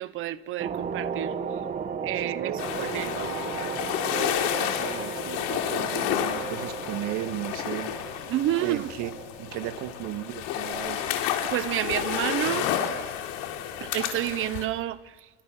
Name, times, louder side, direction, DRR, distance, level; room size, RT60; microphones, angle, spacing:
voice 1, 0.0-1.3 2.0-2.5 2.8-3.1 8.3-8.8 11.4-12.7 13.8-15.0, right 13 dB, 40° right, 1.0 m, -29 dB
sound 1, 0.6-11.6 11.9-12.2, right 6 dB, 25° right, 1.4 m, -36 dB
sound 2, 0.9-1.7 2.3-3.0 3.8-4.5 5.1-5.8 6.4-10.7, left 6 dB, ahead, 6.1 m, -51 dB
voice 2, 2.2-7.9 8.6-9.1 9.4-11.1, right 13 dB, 55° right, 1.8 m, -36 dB
sound 3, 2.6-14.7, left 10 dB, 65° left, 4.0 m, -31 dB
28.5 x 24.5 x 6.5 m
cardioid pair, 165°, 34 cm